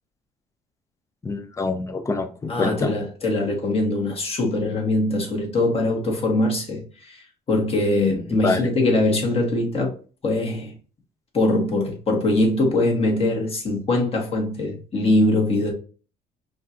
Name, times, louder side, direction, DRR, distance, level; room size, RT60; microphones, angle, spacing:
voice 1, 1.2-3.0 8.4-8.7, left 3 dB, 20° left, 0.7 m, -25 dB
voice 2, 2.5-9.9 10.2-10.7 11.3-15.7, left 2 dB, 35° left, 1.7 m, -22 dB
5.2 x 2.6 x 2.8 m
cardioid pair, 110°, 17 cm